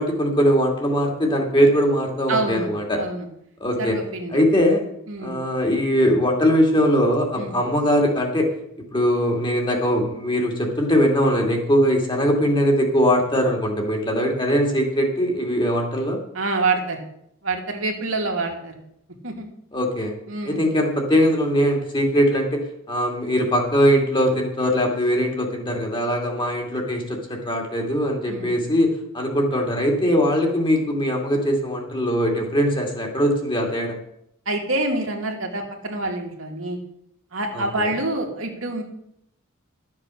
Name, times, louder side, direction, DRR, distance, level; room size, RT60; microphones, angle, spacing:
voice 1, 0.0-3.0 3.6-4.0 4.3-4.8 5.2-8.5 8.9-16.2 19.7-20.1 20.4-34.0 37.5-37.9, equal, 25° left, 2 dB, 2.5 m, -21 dB
voice 2, 2.3-2.7 3.0-3.3 3.8-4.4 5.1-5.4 7.3-7.5 16.3-17.1 17.4-18.7 19.2-19.5 20.3-20.7 28.3-28.5 34.5-36.8 37.3-38.8, right 2 dB, 70° right, 1 dB, 2.4 m, -26 dB
12.5 x 7.6 x 6.4 m, 0.74 s
head